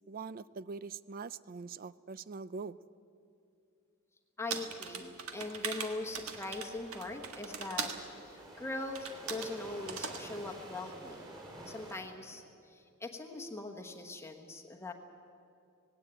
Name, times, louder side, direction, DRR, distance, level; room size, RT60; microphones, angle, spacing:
voice 1, 0.1-2.8, right 4 dB, 40° right, 18 dB, 0.4 m, -43 dB
voice 2, 4.4-7.9 8.2-11.3 11.7-14.9, left 2 dB, 10° left, 3 dB, 1.2 m, -41 dB
sound 1, 4.5-8.0 9.0-9.5 9.9-10.2, right 6 dB, 75° right, 1.6 m, -40 dB
sound 2, 5.8-12.0, right 1 dB, 20° right, 4.7 m, -50 dB
18.0 x 17.5 x 8.9 m, 2.5 s
head